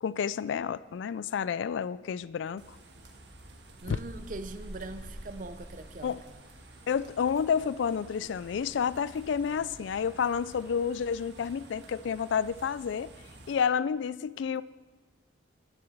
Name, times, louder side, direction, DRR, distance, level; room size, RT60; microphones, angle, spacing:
voice 1, 0.0-2.6 3.9-4.0 6.0-6.2 6.9-13.1 13.5-14.6, left 7 dB, 75° left, 18 dB, 0.3 m, -30 dB
sound 1, 2.6-13.5, right 1 dB, 65° right, 1.6 m, -49 dB
voice 2, 3.8-6.4, right 2 dB, 45° right, 11 dB, 0.6 m, -42 dB
10.5 x 7.8 x 7.2 m, 1.3 s
head